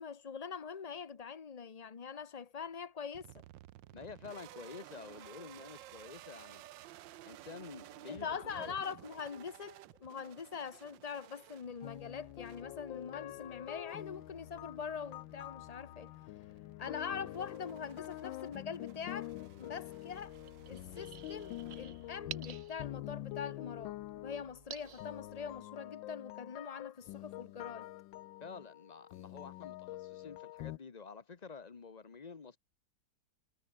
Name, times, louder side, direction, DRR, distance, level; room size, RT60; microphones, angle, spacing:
voice 1, 0.0-3.3 8.1-16.1 16.8-19.3 19.6-20.4 20.7-24.0 24.2-27.9, left 6 dB, 70° left, 0.3 m, -43 dB
sound 1, 3.1-22.3, right 15 dB, 80° right, 1.4 m, -56 dB
voice 2, 3.9-6.6 7.2-8.8 28.4-32.6, left 5 dB, 30° left, 0.8 m, -49 dB
sound 2, 11.8-30.8, left 16 dB, 85° left, 1.4 m, -46 dB
sound 3, 20.1-25.6, right 9 dB, 60° right, 0.7 m, -52 dB
omnidirectional pair, 2.0 m